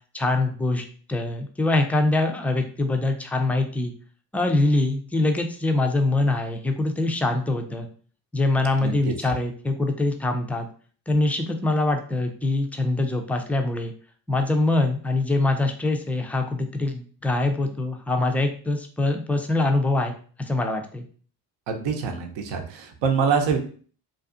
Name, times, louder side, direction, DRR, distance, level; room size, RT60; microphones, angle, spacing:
voice 1, 0.1-3.9 4.3-7.9 8.3-10.7 11.1-13.9 14.3-20.1 20.4-21.0, left 2 dB, 5° left, 4 dB, 0.3 m, -24 dB
voice 2, 8.8-9.1 21.7-23.6, right 6 dB, 70° right, 5 dB, 0.7 m, -25 dB
2.6 x 2.4 x 2.4 m, 0.43 s
supercardioid pair, 60°, 46 cm